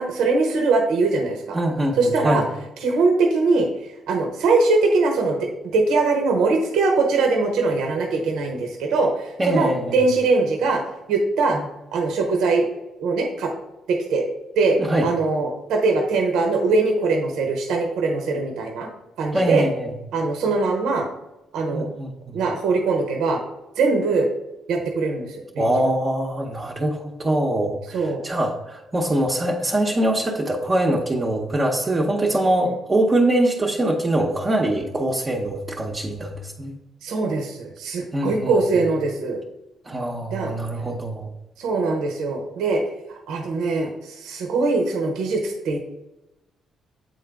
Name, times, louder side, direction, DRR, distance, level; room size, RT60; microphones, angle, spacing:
voice 1, 0.0-1.6 2.0-2.4 2.8-3.7 4.1-10.8 11.1-11.6 11.9-12.7 13.0-13.5 13.9-14.2 14.6-14.8 15.0-18.9 19.2-19.7 20.1-21.1 21.5-21.9 22.3-23.4 23.8-24.3 24.7-25.7 27.9-28.2 37.0-39.4 40.3-40.5 41.6-42.8 43.1-45.8, right 3 dB, 85° right, 3 dB, 0.9 m, -21 dB
voice 2, 1.5-2.5 9.4-10.0 14.8-15.1 19.3-19.9 21.7-22.4 25.6-36.7 38.1-38.8 39.8-41.3, right 1 dB, 30° right, -1 dB, 0.8 m, -23 dB
8.0 x 3.8 x 3.4 m, 0.94 s
cardioid pair, 90°, 0 cm